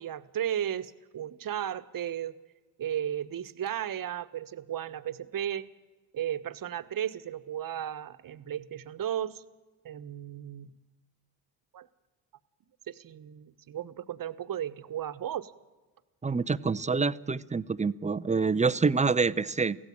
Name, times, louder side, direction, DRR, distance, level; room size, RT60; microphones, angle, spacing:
voice 1, 0.0-2.3 2.8-5.7 6.1-9.4 9.8-10.7 11.7-11.9 12.9-15.5, right 10 dB, 40° right, 12 dB, 1.3 m, -34 dB
voice 2, 16.2-19.8, right 4 dB, 15° right, 15 dB, 0.7 m, -26 dB
24.0 x 16.0 x 8.7 m, 1.3 s
hypercardioid pair, 60°, 50 cm